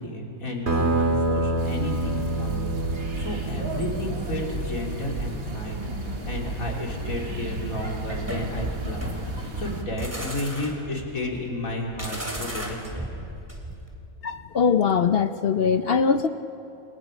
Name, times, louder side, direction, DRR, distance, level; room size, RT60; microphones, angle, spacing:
voice 1, 0.0-13.2, left 1 dB, 75° left, -1 dB, 3.4 m, -32 dB
sound 1, 0.7-5.8, right 2 dB, 50° right, 2.1 m, -28 dB
sound 2, 1.6-9.8, right 2 dB, 80° right, 2.7 m, -33 dB
sound 3, 8.2-13.9, equal, 10° right, 3.0 m, -35 dB
voice 2, 14.2-16.3, left 6 dB, 55° left, 10 dB, 0.8 m, -21 dB
28.5 x 27.5 x 5.2 m, 2.7 s
omnidirectional pair, 1.5 m